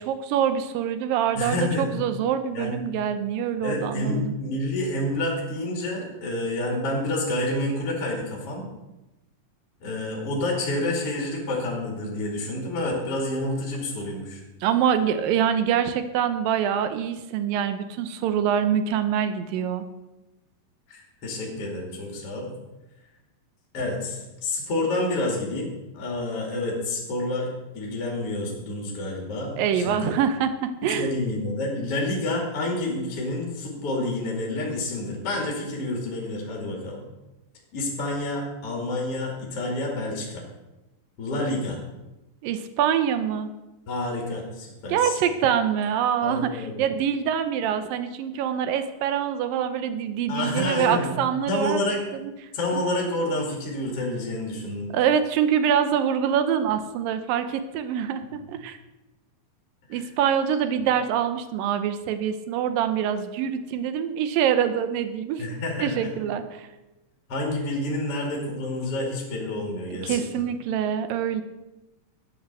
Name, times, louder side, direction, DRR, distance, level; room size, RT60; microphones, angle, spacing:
voice 1, 0.0-4.3 14.6-19.9 29.6-31.1 42.4-43.5 44.9-51.8 52.1-52.3 54.9-58.8 59.9-65.5 65.8-66.7 70.0-71.4, right 8 dB, 90° right, 10 dB, 2.6 m, -25 dB
voice 2, 1.3-1.9 2.5-2.8 3.6-8.7 9.8-14.4 20.9-22.5 23.7-30.1 30.8-37.0 37.7-40.5 41.2-41.8 43.9-45.1 46.2-46.8 50.3-51.1 51.5-52.0 52.5-54.9 59.9-60.0 65.4-66.1 67.3-70.2, left 1 dB, 45° left, -1 dB, 3.2 m, -29 dB
13.5 x 8.5 x 6.6 m, 1.0 s
omnidirectional pair, 3.9 m